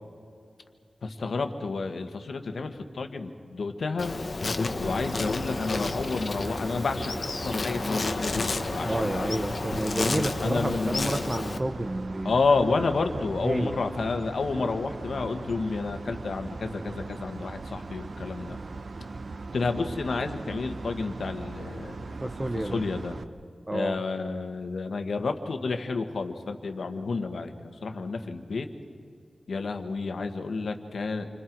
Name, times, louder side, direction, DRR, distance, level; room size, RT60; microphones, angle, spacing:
voice 1, 1.0-4.2 4.8-9.4 10.4-11.1 12.2-18.6 19.5-23.2 23.7-28.7 29.5-31.3, left 4 dB, 85° left, 6 dB, 1.6 m, -30 dB
Insect, 4.0-11.6, left 3 dB, 50° left, 1.3 m, -31 dB
sound 1, 4.8-23.2, right 3 dB, 65° right, 0.9 m, -39 dB
voice 2, 8.8-12.4 13.4-13.8 22.2-22.8 23.7-24.0, right 1 dB, 25° right, 7 dB, 1.0 m, -30 dB
29.0 x 25.5 x 4.7 m, 2.2 s
wide cardioid pair, 110°, 0 cm